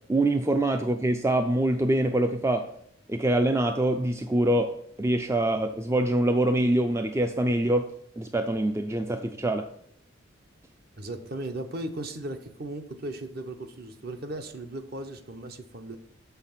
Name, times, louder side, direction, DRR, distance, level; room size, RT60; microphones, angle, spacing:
voice 1, 0.1-2.7 3.1-7.9 8.2-9.7, right 1 dB, 15° right, 7 dB, 0.3 m, -25 dB
voice 2, 11.0-16.0, right 1 dB, 50° right, 8 dB, 0.8 m, -37 dB
7.0 x 5.7 x 5.7 m, 0.70 s
head